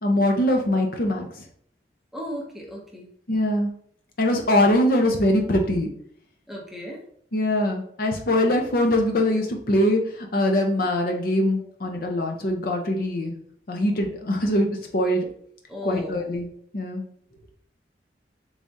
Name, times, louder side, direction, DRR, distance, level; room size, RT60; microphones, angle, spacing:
voice 1, 0.0-1.3 3.3-3.7 4.2-5.9 7.3-13.3 13.7-14.7 14.9-15.3 15.8-16.5 16.7-17.0, left 1 dB, 55° left, 2 dB, 0.6 m, -22 dB
voice 2, 2.1-3.1 6.5-7.0 15.7-16.2, equal, ahead, -1 dB, 0.6 m, -35 dB
3.5 x 3.2 x 2.6 m, 0.63 s
head